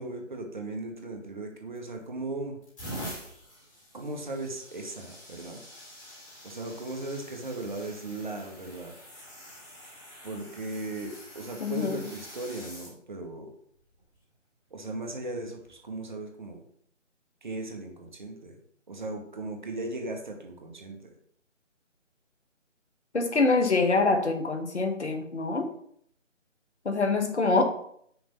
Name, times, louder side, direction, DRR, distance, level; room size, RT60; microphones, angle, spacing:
voice 1, 0.0-2.6 3.9-5.6 6.4-8.9 10.2-13.5 14.7-16.7 17.4-18.6 18.9-21.0, right 2 dB, 40° right, 3 dB, 1.1 m, -37 dB
sound 1, 1.8-2.1 2.6-12.9 13.8-14.1 15.6-15.7, equal, 25° left, 2.2 m, -46 dB
voice 2, 11.6-12.0 23.1-25.7 26.8-27.6, left 3 dB, 65° left, 6 dB, 1.1 m, -25 dB
6.0 x 3.3 x 5.3 m, 0.66 s
figure-of-eight pair, 155°, 37 cm